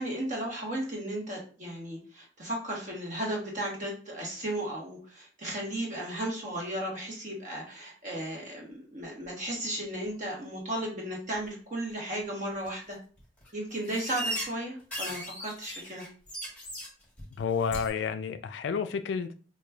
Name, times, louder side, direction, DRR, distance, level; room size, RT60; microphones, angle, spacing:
voice 1, 0.0-13.0 13.5-16.1, right 1 dB, 40° right, 1.0 m, -35 dB
sound 1, 12.6-12.7 13.2-13.5 13.8-14.5 14.8-16.9 17.2-17.4 17.7-17.9, equal, 10° left, 1.1 m, -37 dB
voice 2, 17.4-19.3, left 6 dB, 70° left, 0.3 m, -30 dB
4.8 x 2.2 x 2.3 m
head